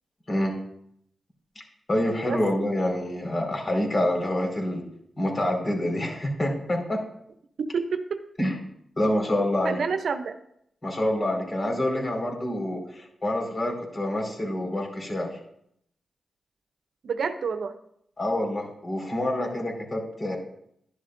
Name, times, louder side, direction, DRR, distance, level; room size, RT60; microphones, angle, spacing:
voice 1, 1.9-4.8 5.2-7.0 8.4-8.6 9.0-9.8 10.8-15.3 18.2-20.4, left 1 dB, 35° left, 1 dB, 4.8 m, -27 dB
voice 2, 7.6-8.2 9.6-10.4 17.0-17.7, right 5 dB, 75° right, 8 dB, 0.7 m, -28 dB
11.5 x 11.5 x 2.6 m, 0.73 s
cardioid pair, 45°, 0 cm